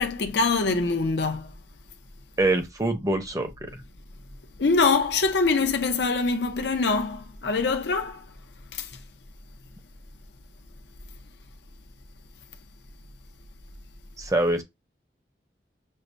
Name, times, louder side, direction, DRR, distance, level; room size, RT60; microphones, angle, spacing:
voice 1, 0.0-1.5 4.6-8.2 8.7-8.9, left 4 dB, 75° left, 0.7 m, -24 dB
voice 2, 2.4-3.8 14.2-14.6, right 2 dB, 20° right, 0.7 m, -25 dB
6.4 x 2.1 x 2.5 m
head